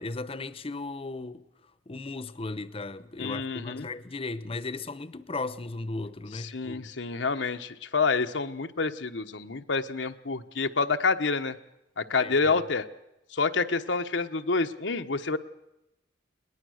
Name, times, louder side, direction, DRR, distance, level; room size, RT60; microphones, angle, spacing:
voice 1, 0.0-1.4 1.9-6.9 12.2-12.6, left 3 dB, 30° left, 0.8 m, -36 dB
voice 2, 3.2-3.9 6.5-11.6 12.0-12.8 13.3-15.4, left 4 dB, 85° left, 1.1 m, -28 dB
21.5 x 19.5 x 6.5 m
head